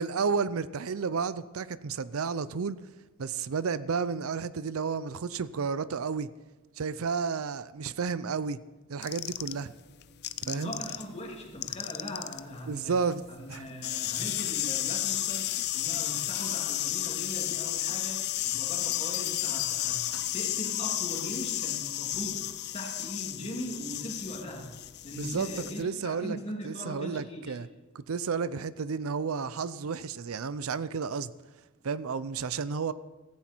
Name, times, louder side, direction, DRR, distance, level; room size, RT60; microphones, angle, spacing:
voice 1, 0.0-2.8 3.2-6.3 6.8-8.6 8.9-9.7 10.5-10.7 12.7-13.2 13.5-13.7 25.2-25.5 25.8-26.4 26.6-27.7 27.9-31.3 31.8-32.9, right 5 dB, 75° right, 0.5 m, -31 dB
sound 1, 9.0-11.0 11.3-25.8, left 14 dB, 50° left, 0.5 m, -32 dB
voice 2, 10.4-12.9 13.3-20.0 20.3-24.7 25.0-27.6, equal, 30° left, 2.9 m, -40 dB
sound 2, 18.8-20.5 22.1-22.5, left 13 dB, 75° left, 1.2 m, -40 dB
16.5 x 15.0 x 4.5 m
head